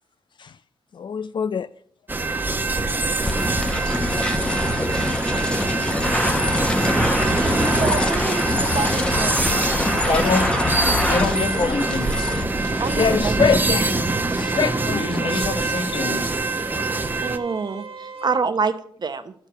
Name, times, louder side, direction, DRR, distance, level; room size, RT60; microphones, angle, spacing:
voice 1, 0.9-1.7 4.3-4.7 5.4-5.5 13.0-15.4, left 6 dB, 60° left, 0.4 m, -25 dB
sound 1, 2.1-17.4, right 3 dB, 20° right, 0.8 m, -24 dB
sound 2, 3.2-13.2, left 1 dB, 10° left, 0.9 m, -24 dB
voice 2, 7.7-10.6 11.1-11.2 12.8-13.5 13.8-13.9 17.2-19.3, right 5 dB, 50° right, 0.9 m, -28 dB
voice 3, 10.0-10.5 11.1-12.3 14.9-16.3, left 3 dB, 80° left, 1.3 m, -25 dB
sound 3, 13.2-18.3, right 5 dB, 85° right, 1.0 m, -36 dB
11.5 x 4.6 x 6.8 m
wide cardioid pair, 95°, 9 cm